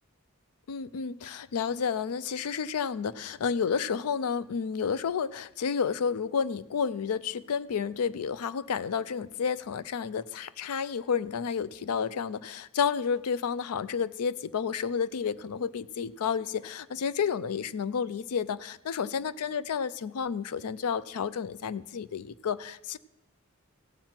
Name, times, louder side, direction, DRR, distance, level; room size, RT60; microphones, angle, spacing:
voice 1, 0.7-23.0, left 6 dB, 80° left, 16 dB, 0.4 m, -31 dB
16.5 x 7.5 x 4.4 m, 1.0 s
head